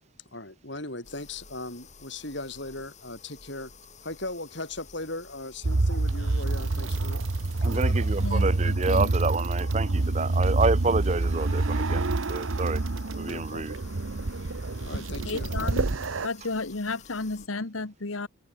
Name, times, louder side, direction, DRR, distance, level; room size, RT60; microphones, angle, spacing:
voice 1, 0.3-3.7 4.0-7.2 7.6-8.3 13.3-13.7 14.4-14.5 14.8-15.7, left 2 dB, 60° left, 6.1 m, -38 dB
sound 1, 1.0-17.5, left 5 dB, 35° left, 5.6 m, -51 dB
sound 2, 5.6-16.3, right 2 dB, 80° right, 1.0 m, -27 dB
voice 2, 7.6-12.8 13.2-13.7, right 3 dB, 35° right, 0.7 m, -28 dB
voice 3, 8.2-9.2 14.9-15.9 16.2-18.3, left 3 dB, 85° left, 1.4 m, -33 dB
head